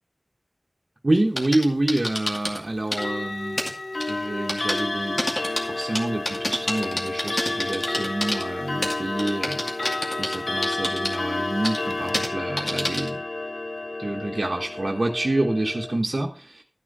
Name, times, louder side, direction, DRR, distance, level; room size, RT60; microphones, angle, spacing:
voice 1, 1.0-3.7 4.0-5.2 5.6-9.6 10.1-13.2 14.0-16.6, right 1 dB, 65° right, 1 dB, 1.1 m, -27 dB
sound 1, 1.1-2.6 2.9-3.0 3.6-3.7 4.0-4.1 4.5-4.8 5.2-8.4 8.8-10.4 10.6-11.2 11.6-11.8 12.1-12.3 12.6-13.1, left 1 dB, 45° left, 2.3 m, -28 dB
Clock, 2.9-16.0, left 2 dB, 80° left, 0.5 m, -30 dB
13.0 x 6.3 x 5.4 m, 0.40 s
wide cardioid pair, 50°, 0 cm